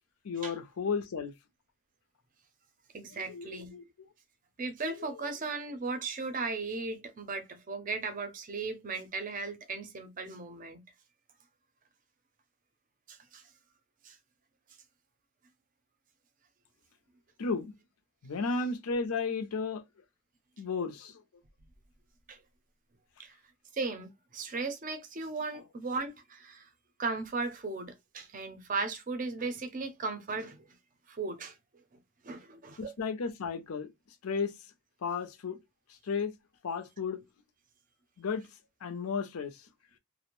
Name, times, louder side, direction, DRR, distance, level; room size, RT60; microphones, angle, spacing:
voice 1, 0.2-1.3 3.3-3.8 5.0-5.1 17.4-17.7 18.2-19.8 20.6-21.2 32.8-33.9 34.2-34.5 35.0-35.6 36.1-36.3 36.6-37.2 38.2-38.4 38.8-39.6, left 5 dB, 85° left, 0.5 m, -33 dB
voice 2, 2.9-3.7 4.6-10.8 13.1-13.4 14.0-14.2 22.3-22.4 23.2-23.4 23.7-26.7 27.0-30.6 31.1-31.6 32.2-32.9, right 3 dB, 35° right, 0.5 m, -36 dB
2.5 x 2.0 x 2.9 m
head